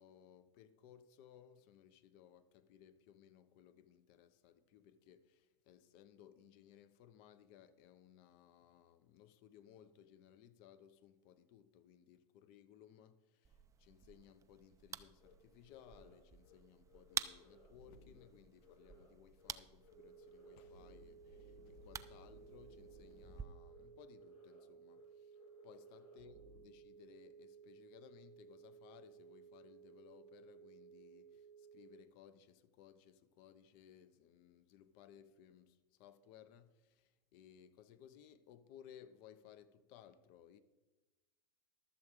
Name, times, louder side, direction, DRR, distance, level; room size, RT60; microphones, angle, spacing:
voice 1, 0.0-40.6, left 9 dB, 50° left, 0.8 m, -62 dB
sound 1, 13.4-23.5, right 7 dB, 15° right, 0.4 m, -50 dB
sound 2, 15.2-15.3 15.7-16.2 16.4-16.6 16.9-18.3 18.6-19.1 19.4-19.5 19.8-23.4 23.7-23.8 24.1-24.6 24.9-25.0 25.3-26.6, left 2 dB, 75° left, 3.1 m, -62 dB
sound 3, 19.9-32.0, right 7 dB, 85° right, 0.5 m, -59 dB
12.0 x 7.4 x 4.7 m
hypercardioid pair, 110°, 21 cm